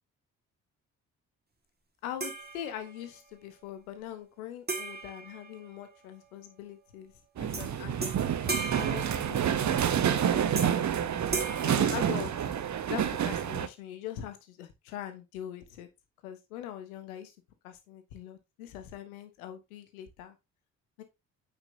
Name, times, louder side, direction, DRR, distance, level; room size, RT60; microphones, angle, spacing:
voice 1, 2.0-7.1 7.4-8.1 8.5-10.9 11.6-12.3 12.9-15.9 16.2-17.3 17.6-20.3 21.0-21.1, left 11 dB, 80° left, 9 dB, 1.4 m, -42 dB
sound 1, 2.2-3.2 4.7-6.2 7.5-7.7 8.0-9.8 10.5-10.9 11.3-12.7, right 4 dB, 20° right, 2.0 m, -38 dB
sound 2, 7.4-13.7, right 9 dB, 40° right, 1.0 m, -28 dB
9.1 x 5.7 x 2.8 m, 0.22 s
figure-of-eight pair, 40°, 43 cm